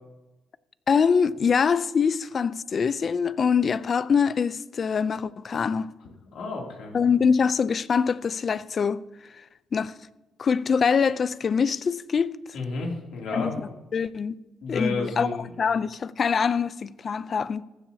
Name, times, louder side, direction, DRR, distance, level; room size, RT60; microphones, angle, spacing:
voice 1, 0.9-5.9 6.9-9.0 9.7-10.0 10.4-12.3 13.3-13.5 13.9-14.3 14.7-15.3 15.6-17.6, left 6 dB, 45° left, 0.4 m, -24 dB
voice 2, 6.3-6.9 12.5-13.5 14.6-15.5, left 3 dB, 80° left, 2.8 m, -31 dB
15.0 x 10.0 x 2.8 m
cardioid pair, 90°, 0 cm